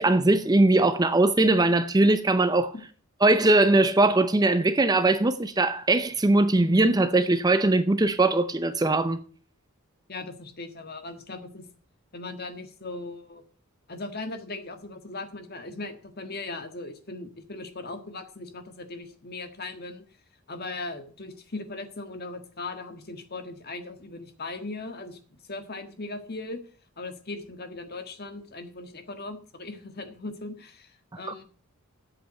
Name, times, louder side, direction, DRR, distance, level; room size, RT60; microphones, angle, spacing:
voice 1, 0.0-2.7 3.2-9.2, right 2 dB, 20° right, 0.5 m, -21 dB
voice 2, 10.1-11.6 12.1-13.4 13.9-20.0 20.5-25.2 25.5-26.6 27.0-31.4, left 3 dB, 45° left, 1.6 m, -38 dB
8.5 x 7.8 x 7.6 m
head